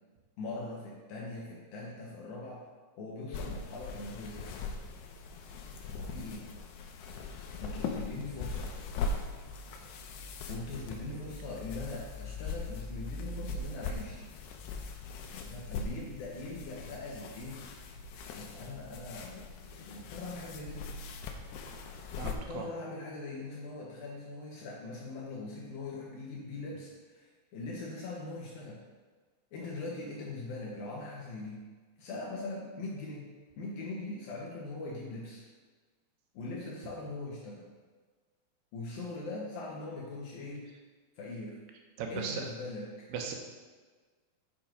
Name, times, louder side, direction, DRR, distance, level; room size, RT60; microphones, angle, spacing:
voice 1, 0.4-2.7 3.0-4.6 5.8-6.5 7.6-8.7 10.5-14.2 15.3-17.6 18.4-20.9 22.3-28.8 29.5-31.6 32.0-33.3 33.6-35.4 36.3-37.7 38.7-40.6 41.2-41.6 42.1-43.1, left 2 dB, 70° left, -3 dB, 2.8 m, -41 dB
sound 1, 3.3-22.3, left 3 dB, 85° left, 2.8 m, -40 dB
voice 2, 22.2-22.7 42.0-42.4 43.1-43.4, right 6 dB, 75° right, 3 dB, 2.9 m, -37 dB
8.6 x 6.0 x 5.1 m, 1.4 s
omnidirectional pair, 4.6 m